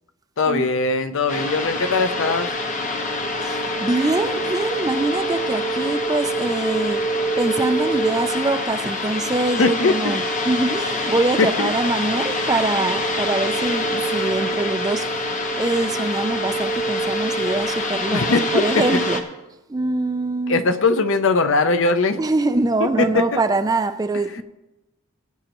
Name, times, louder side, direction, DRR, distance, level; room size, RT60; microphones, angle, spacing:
voice 1, 0.4-2.5 9.6-10.2 11.4-11.7 18.1-18.8 20.5-22.2 22.8-23.2 24.3-24.4, left 3 dB, 65° left, 0.6 m, -20 dB
sound 1, 1.3-19.2, equal, 35° left, 1.0 m, -25 dB
voice 2, 3.4-7.0 7.4-15.1 15.6-19.2 19.7-20.7 22.2-24.4, right 2 dB, 15° right, 0.3 m, -24 dB
18.0 x 8.7 x 3.0 m
head